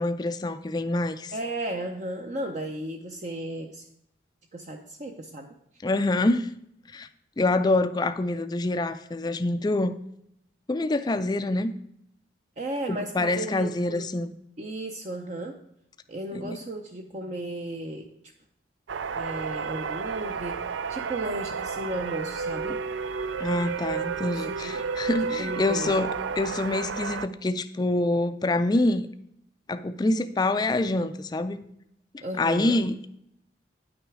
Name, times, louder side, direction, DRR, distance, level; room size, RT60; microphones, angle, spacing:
voice 1, 0.0-1.3 5.8-6.5 6.9-7.1 7.4-9.9 10.7-11.7 12.9-14.3 16.3-16.6 23.4-29.1 29.7-31.6 32.1-33.1, left 2 dB, 20° left, 10 dB, 0.3 m, -26 dB
voice 2, 1.3-3.9 4.5-5.5 12.6-14.1 14.6-15.6 16.1-18.1 19.2-22.8 24.3-24.9 25.2-25.9 32.2-32.8, right 1 dB, 40° right, 3 dB, 0.6 m, -35 dB
sound 1, 18.9-27.3, right 5 dB, 85° right, 0.4 m, -32 dB
9.2 x 6.1 x 4.7 m, 0.74 s
head